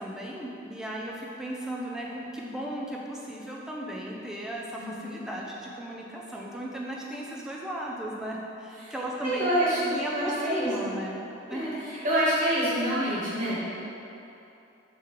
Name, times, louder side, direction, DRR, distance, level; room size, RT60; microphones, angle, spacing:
voice 1, 0.0-9.5 9.8-11.7, right 1 dB, 5° right, -3 dB, 0.4 m, -36 dB
voice 2, 4.8-5.3 8.8-8.9 9.2-10.9 11.4-13.5, equal, 40° right, -10 dB, 1.4 m, -27 dB
3.9 x 2.9 x 4.6 m, 2.8 s
head